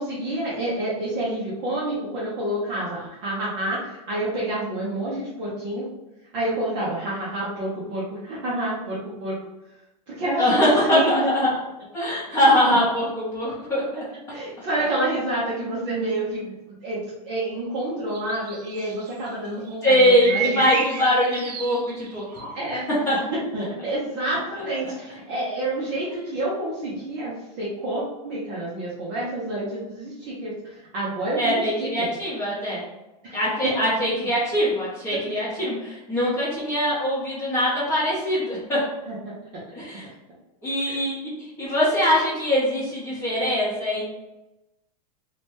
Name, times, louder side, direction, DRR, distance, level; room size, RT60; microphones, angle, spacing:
voice 1, 0.0-5.9 6.3-9.4 10.2-10.6 10.9-11.3 12.7-12.8 14.3-20.6 22.5-22.8 23.5-31.9 33.2-33.4 33.6-33.7 39.1-39.3 40.9-41.0, right 1 dB, 25° right, -7 dB, 0.5 m, -28 dB
voice 2, 10.4-11.6 11.9-14.0 19.8-22.5 23.1-23.2 31.3-32.8 33.3-38.8 39.7-40.0 40.6-44.0, equal, 15° left, -7 dB, 0.8 m, -22 dB
sound 1, 18.1-19.3 19.7-22.4, right 7 dB, 85° right, 0.5 m, -31 dB
2.7 x 2.1 x 3.1 m, 0.99 s
supercardioid pair, 175°, 20 cm